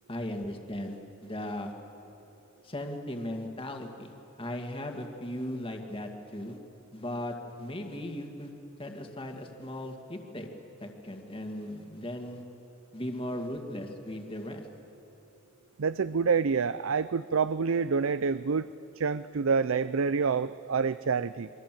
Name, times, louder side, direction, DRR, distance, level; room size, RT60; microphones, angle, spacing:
voice 1, 0.1-1.7 2.6-4.1 4.4-6.6 6.9-8.5 8.8-10.5 10.8-12.4 12.9-14.7, left 1 dB, 25° left, 3 dB, 2.1 m, -37 dB
voice 2, 15.8-21.5, right 5 dB, 85° right, 14 dB, 0.5 m, -27 dB
29.0 x 23.0 x 7.7 m, 2.9 s
head